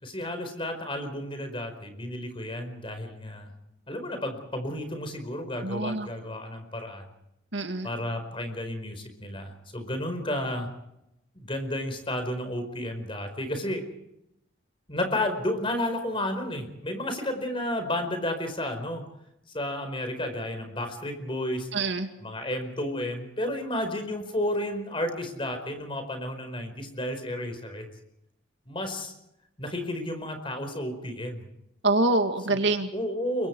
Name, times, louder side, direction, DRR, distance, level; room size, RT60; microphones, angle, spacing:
voice 1, 0.0-3.5 3.9-7.0 7.8-10.7 11.3-13.8 14.9-19.0 19.5-21.7 22.2-27.9 28.7-29.1 29.6-31.4 32.5-32.6 32.9-33.5, left 1 dB, 25° left, 7 dB, 4.8 m, -32 dB
voice 2, 5.6-6.1 7.5-7.9 21.7-22.1 31.8-32.9, right 2 dB, 65° right, 6 dB, 2.2 m, -25 dB
30.0 x 23.5 x 4.7 m, 0.84 s
head